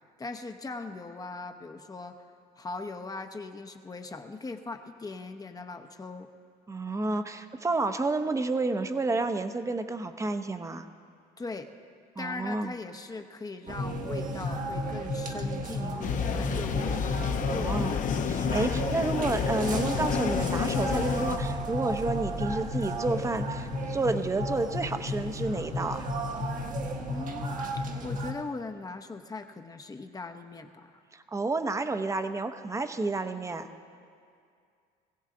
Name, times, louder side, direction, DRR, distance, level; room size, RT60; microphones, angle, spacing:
voice 1, 0.2-2.3 2.6-6.3 11.4-11.7 12.2-17.0 17.5-18.1 27.1-31.0, left 3 dB, 20° left, 6 dB, 0.8 m, -40 dB
voice 2, 6.7-10.9 12.2-12.7 17.5-18.0 18.2-26.1 31.1-33.7, right 3 dB, 20° right, 9 dB, 0.8 m, -30 dB
sound 1, 13.7-28.3, equal, 50° right, 1.3 m, -33 dB
sound 2, 16.0-21.4, left 7 dB, 50° left, 0.8 m, -30 dB
20.5 x 15.5 x 3.8 m, 2.3 s
cardioid pair, 110°, 17 cm